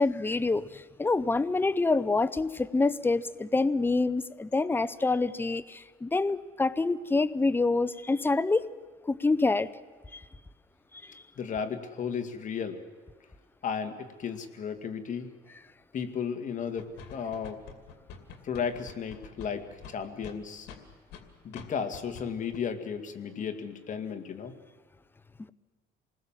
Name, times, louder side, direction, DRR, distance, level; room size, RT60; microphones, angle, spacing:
voice 1, 0.0-8.7 9.1-9.7 10.1-10.2, left 3 dB, 10° left, 16 dB, 0.7 m, -26 dB
voice 2, 11.4-12.8 13.6-15.3 15.9-17.6 18.4-20.7 21.4-24.5, left 6 dB, 50° left, 7 dB, 2.2 m, -34 dB
sound 1, 16.8-21.2 21.5-21.7 21.9-22.2 22.5-22.6, left 6 dB, 85° left, 2.6 m, -46 dB
27.0 x 20.0 x 7.5 m, 1.4 s
cardioid pair, 110°, 17 cm